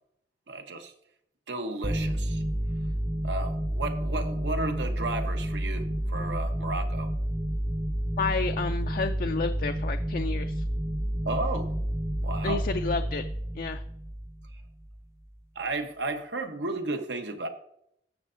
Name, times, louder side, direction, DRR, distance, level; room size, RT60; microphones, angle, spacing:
voice 1, 0.5-0.9 1.5-2.4 3.2-7.1 11.2-11.7 12.2-12.6 15.5-17.5, right 2 dB, 85° right, 6 dB, 1.0 m, -33 dB
sound 1, 1.8-15.0, equal, 15° right, 0.6 m, -30 dB
voice 2, 8.2-10.5 12.4-13.2 13.6-13.8, left 4 dB, 50° left, 7 dB, 0.4 m, -30 dB
17.5 x 6.6 x 2.6 m, 0.75 s
head